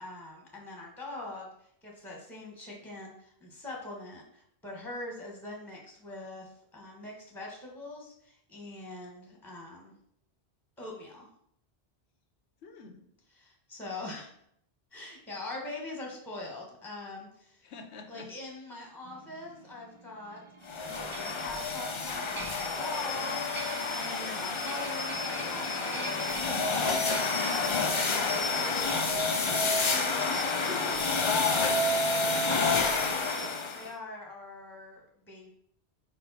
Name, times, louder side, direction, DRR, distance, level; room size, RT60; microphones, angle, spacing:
voice 1, 0.0-9.9 10.8-11.3 13.3-14.3 14.9-17.6 18.1-31.4 31.7-32.2 32.7-35.5, left 2 dB, ahead, -1 dB, 1.1 m, -43 dB
voice 2, 12.6-13.1 17.6-18.3 31.2-32.2, left 6 dB, 90° left, 6 dB, 1.0 m, -38 dB
sound 1, 19.0-28.8, right 3 dB, 40° right, 0.5 m, -46 dB
sound 2, 20.7-33.9, left 3 dB, 40° left, 0.4 m, -29 dB
5.1 x 4.6 x 4.0 m, 0.71 s
omnidirectional pair, 1.1 m